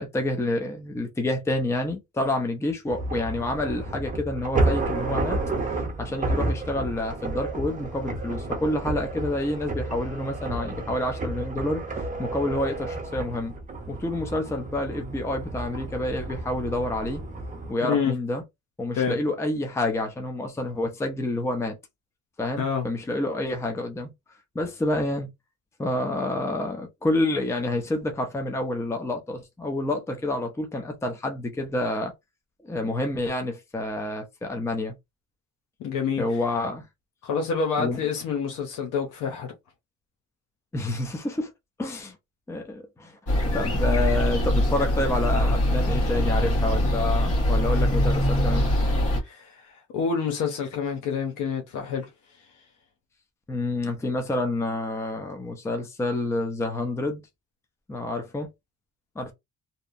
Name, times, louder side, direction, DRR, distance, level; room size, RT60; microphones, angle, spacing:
voice 1, 0.0-5.4 6.0-11.8 12.2-13.5 13.9-17.2 17.7-18.4 18.8-21.8 22.4-24.1 24.5-25.3 25.8-32.1 32.6-34.9 36.2-36.8 37.8-38.0 40.7-41.5 41.8-42.2 42.5-43.2 43.5-48.7 53.5-57.2 57.9-58.5 59.2-59.3, left 2 dB, 10° left, 0.5 m, -28 dB
sound 1, 2.9-17.7, right 2 dB, 25° right, 0.8 m, -31 dB
voice 2, 35.8-36.2 37.2-39.5 49.2-52.1, left 6 dB, 90° left, 0.7 m, -27 dB
sound 2, 43.3-49.2, left 1 dB, 50° left, 1.4 m, -23 dB
2.8 x 2.0 x 2.5 m
cardioid pair, 90°, 30 cm